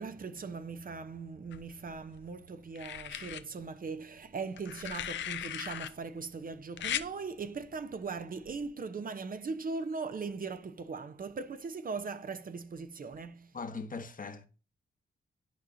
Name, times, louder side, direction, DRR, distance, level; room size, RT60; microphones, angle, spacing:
voice 1, 0.0-13.5, right 4 dB, 50° right, 0.7 m, -39 dB
sound 1, 1.5-2.2 2.8-3.4 4.6-5.9 6.8-7.1 8.5-8.7, left 10 dB, 85° left, 0.5 m, -38 dB
voice 2, 13.5-14.5, left 4 dB, 45° left, 1.1 m, -40 dB
10.5 x 4.8 x 2.6 m
cardioid pair, 55°, 19 cm